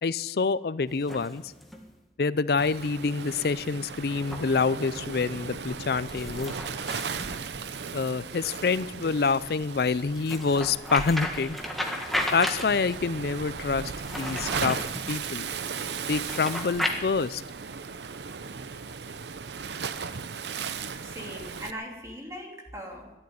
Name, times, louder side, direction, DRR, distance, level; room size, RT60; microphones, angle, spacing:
voice 1, 0.0-1.4 2.2-6.5 7.9-11.6 12.3-14.8 15.1-15.5 16.1-17.4, left 4 dB, 60° left, 17 dB, 0.5 m, -27 dB
sound 1, 0.9-1.9 4.1-4.4 6.1-8.0 10.1-13.0 13.9-15.1 16.1-16.9, left 1 dB, ahead, 1.6 m, -34 dB
Waves surf, 2.6-21.7, right 5 dB, 70° right, 0.7 m, -37 dB
voice 2, 21.0-23.1, equal, 15° right, 0 dB, 2.7 m, -40 dB
13.5 x 11.0 x 9.6 m, 1.1 s
head